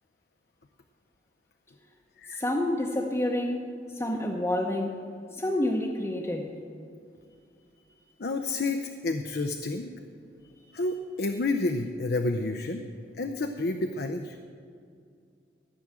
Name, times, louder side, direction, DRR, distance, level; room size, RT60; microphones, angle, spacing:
voice 1, 2.4-5.0 5.3-6.5, left 1 dB, 15° left, 0 dB, 0.8 m, -29 dB
voice 2, 8.2-9.9 10.7-12.8 13.2-14.4, left 2 dB, 60° left, 6 dB, 0.6 m, -30 dB
14.5 x 6.2 x 8.7 m, 2.4 s
head